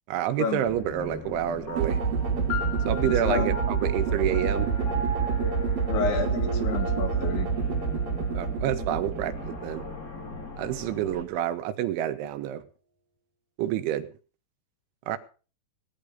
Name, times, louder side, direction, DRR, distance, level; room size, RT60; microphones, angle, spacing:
voice 1, 0.1-2.0 2.9-4.7 8.4-9.8 10.6-12.6 13.6-14.1 15.1-15.2, right 11 dB, 85° right, 10 dB, 3.6 m, -28 dB
sound 1, 0.7-11.2, left 3 dB, 30° left, 1.9 m, -41 dB
sound 2, 1.7-10.5, equal, 55° left, 7.4 m, -38 dB
sound 3, 1.8-10.0, right 6 dB, 55° right, 3.5 m, -27 dB
voice 2, 3.0-3.6 5.9-7.5, left 6 dB, 80° left, 8 dB, 3.9 m, -30 dB
18.5 x 10.5 x 5.2 m, 0.37 s
omnidirectional pair, 5.3 m